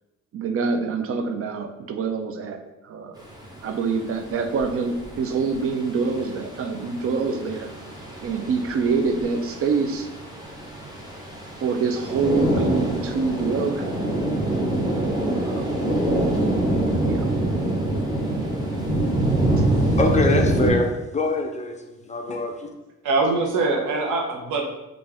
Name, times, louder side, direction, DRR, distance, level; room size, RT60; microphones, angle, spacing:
voice 1, 0.3-3.2 3.6-7.7 8.2-10.1 11.6-14.0 15.4-15.7 17.0-17.3, right 4 dB, 50° right, 7 dB, 0.5 m, -25 dB
sound 1, 3.2-20.7, right 1 dB, 15° right, 1.0 m, -25 dB
voice 2, 19.8-22.7, left 2 dB, 25° left, 3 dB, 0.4 m, -24 dB
voice 3, 23.0-24.6, right 3 dB, 85° right, 0 dB, 0.8 m, -23 dB
3.3 x 2.5 x 3.4 m, 0.97 s
cardioid pair, 90°, 30 cm